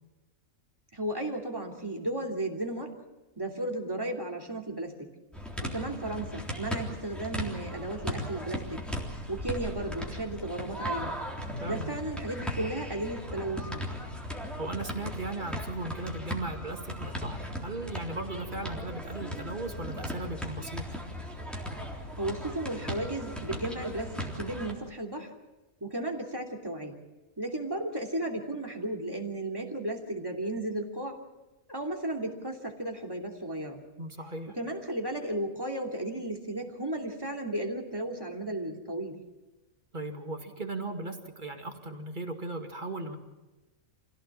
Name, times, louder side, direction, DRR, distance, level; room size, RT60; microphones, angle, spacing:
voice 1, 0.9-2.9 3.4-5.0 5.6-8.9 9.3-11.2 11.6-13.9 22.2-25.3 25.8-27.0 27.4-31.2 31.7-33.8 34.5-39.2, right 1 dB, 15° right, 3 dB, 3.0 m, -34 dB
sound 1, 5.3-24.7, equal, ahead, 3.6 m, -37 dB
voice 2, 11.6-11.9 14.6-20.9 34.0-34.6 39.9-43.2, right 2 dB, 35° right, 3 dB, 2.3 m, -37 dB
26.5 x 16.5 x 7.4 m, 1.1 s
omnidirectional pair, 1.5 m